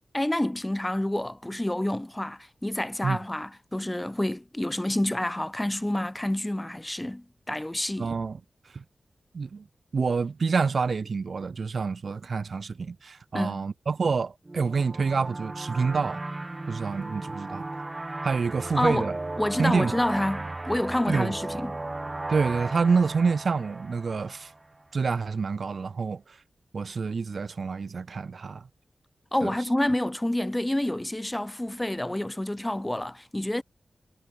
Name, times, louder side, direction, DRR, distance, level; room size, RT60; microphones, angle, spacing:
voice 1, 0.1-8.1 13.3-13.6 18.7-19.1 19.4-21.8 29.3-33.6, left 1 dB, 10° left, 2.1 m, -28 dB
voice 2, 8.0-8.4 8.7-8.8 9.3-9.6 9.9-16.2 16.7-17.8 18.2-19.1 19.6-19.9 21.1-21.3 22.3-24.5 24.9-26.4 26.7-28.7 29.4-29.5, right 5 dB, 60° right, 1.6 m, -27 dB
sound 1, 14.5-24.8, right 2 dB, 25° right, 1.1 m, -36 dB
wide cardioid pair, 130°, 0 cm